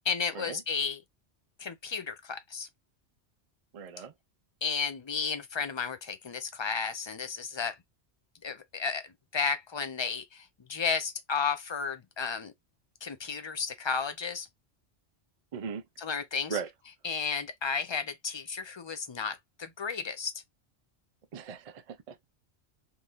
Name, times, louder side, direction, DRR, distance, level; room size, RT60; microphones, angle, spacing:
voice 1, 0.1-1.0 1.6-2.7 4.6-7.8 8.4-9.1 9.3-12.5 13.0-14.5 16.0-16.6 17.0-20.3, left 5 dB, 40° left, 0.4 m, -33 dB
voice 2, 3.7-4.1 15.5-15.8 16.5-16.7 21.3-22.3, right 6 dB, 50° right, 0.4 m, -38 dB
3.6 x 2.9 x 2.4 m
omnidirectional pair, 1.2 m